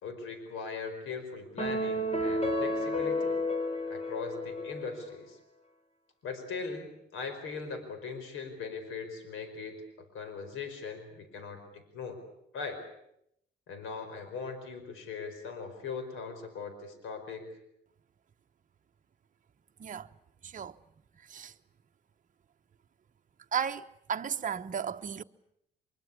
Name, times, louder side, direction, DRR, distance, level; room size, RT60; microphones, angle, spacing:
voice 1, 0.0-3.4 3.9-5.4 6.2-9.8 10.1-12.2 12.5-12.8 13.7-17.5, left 5 dB, 85° left, 4.8 m, -40 dB
sound 1, 1.6-5.1, left 1 dB, 30° left, 4.8 m, -31 dB
voice 2, 23.5-25.2, right 7 dB, 40° right, 1.0 m, -34 dB
24.0 x 23.0 x 8.4 m
cardioid pair, 90°, 20 cm